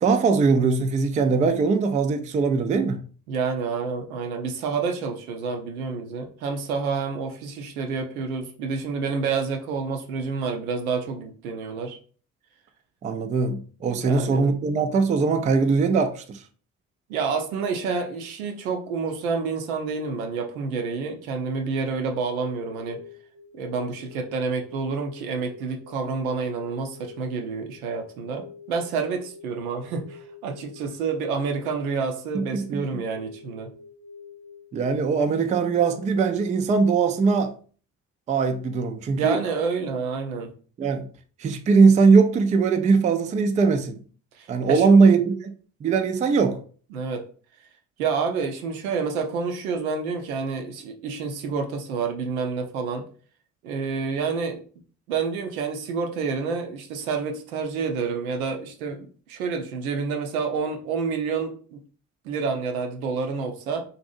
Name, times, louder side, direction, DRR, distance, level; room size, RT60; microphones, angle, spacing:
voice 1, 0.0-3.0 13.0-16.4 32.3-32.8 34.7-37.5 38.3-39.4 40.8-41.1 41.4-44.0 44.5-45.4 45.8-46.6, right 4 dB, 20° right, 0.3 m, -20 dB
voice 2, 3.3-12.0 14.0-14.5 17.1-23.0 23.5-33.7 39.1-40.5 44.4-45.2 46.9-47.2 48.0-53.0 53.6-54.6 55.1-61.8 62.2-63.8, right 5 dB, 80° right, 0.5 m, -28 dB
sound 1, 22.3-36.4, left 4 dB, 80° left, 0.6 m, -47 dB
2.6 x 2.6 x 2.5 m
figure-of-eight pair, 40°, 42 cm